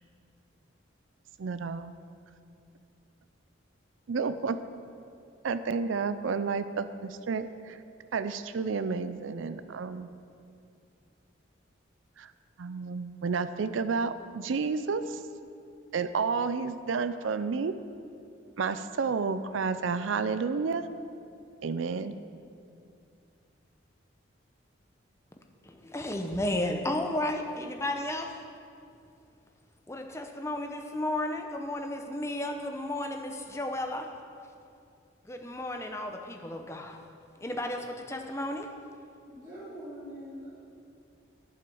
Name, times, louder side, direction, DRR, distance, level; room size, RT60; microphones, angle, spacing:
voice 1, 1.4-1.9 4.1-4.6 5.4-7.8 8.1-10.1 12.2-12.3 12.6-15.2 15.9-17.7 18.6-20.9 21.6-22.1, right 5 dB, 75° right, 12 dB, 0.4 m, -31 dB
voice 2, 25.6-28.3 29.9-34.1 35.2-37.0 37.4-38.7, left 1 dB, 15° left, 4 dB, 0.7 m, -33 dB
voice 3, 39.3-40.5, equal, 20° right, -15 dB, 3.1 m, -43 dB
9.0 x 7.8 x 7.0 m, 2.5 s
head